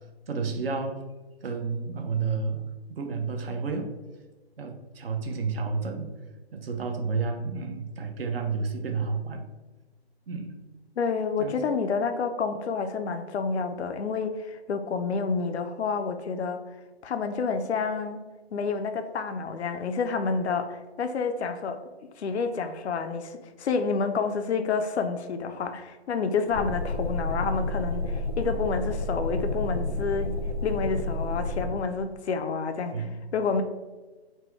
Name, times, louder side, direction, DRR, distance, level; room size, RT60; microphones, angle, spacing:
voice 1, 0.3-1.0 1.4-2.6 2.9-3.9 4.2-4.3 4.6-6.1 6.5-9.4 10.3-10.6 11.4-11.5 17.6-17.7 32.8-33.1, right 4 dB, 60° right, 4 dB, 0.8 m, -31 dB
voice 2, 11.0-16.6 17.0-18.2 18.5-21.8 22.2-30.4 30.6-33.1 33.3-33.6, left 5 dB, 80° left, 7 dB, 0.5 m, -29 dB
sound 1, 26.5-31.7, left 2 dB, 25° left, 0.4 m, -30 dB
4.4 x 2.2 x 4.3 m, 1.2 s
figure-of-eight pair, 145°, 33 cm